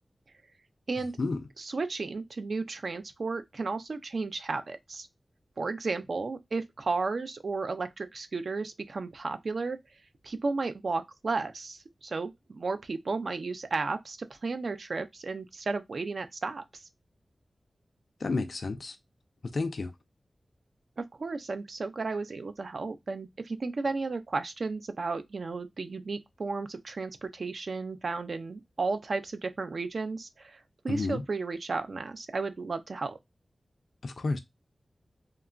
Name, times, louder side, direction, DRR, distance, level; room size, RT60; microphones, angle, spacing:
voice 1, 1.6-5.1 5.6-9.8 10.2-16.6 21.0-30.6 30.8-33.2, right 3 dB, 65° right, 0.4 m, -33 dB
voice 2, 18.2-19.0 19.5-19.9 30.9-31.2 34.0-34.4, left 3 dB, 65° left, 0.3 m, -31 dB
2.9 x 2.3 x 2.3 m
wide cardioid pair, 75°, 0 cm